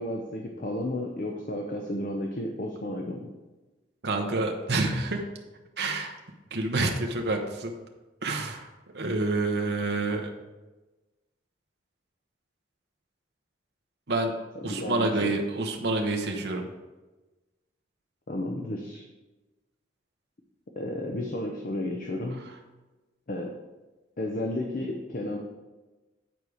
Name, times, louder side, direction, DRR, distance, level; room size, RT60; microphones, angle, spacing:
voice 1, 0.0-3.3 14.7-15.3 18.3-19.0 20.8-22.5 23.3-23.5 24.2-25.4, left 1 dB, 50° left, 2 dB, 0.7 m, -32 dB
voice 2, 4.0-5.2 5.8-6.1 6.5-7.7 8.2-8.7 8.9-10.3 14.1-14.3 14.6-16.7, right 2 dB, 60° right, 2 dB, 0.9 m, -28 dB
9.0 x 4.7 x 5.0 m, 1.1 s
head